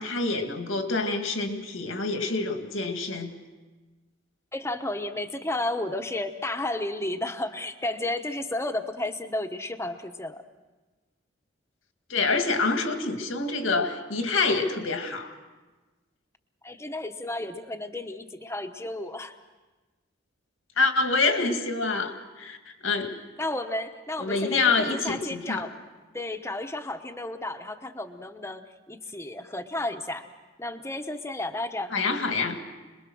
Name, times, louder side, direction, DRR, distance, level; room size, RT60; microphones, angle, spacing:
voice 1, 0.0-3.3 12.1-15.3 20.8-23.1 24.2-25.6 31.9-32.6, left 3 dB, 85° left, 5 dB, 2.1 m, -26 dB
voice 2, 4.5-10.4 16.6-19.3 23.4-25.7 26.1-30.3 30.6-31.9, left 2 dB, 15° left, 7 dB, 1.0 m, -32 dB
26.5 x 21.5 x 6.3 m, 1.2 s
head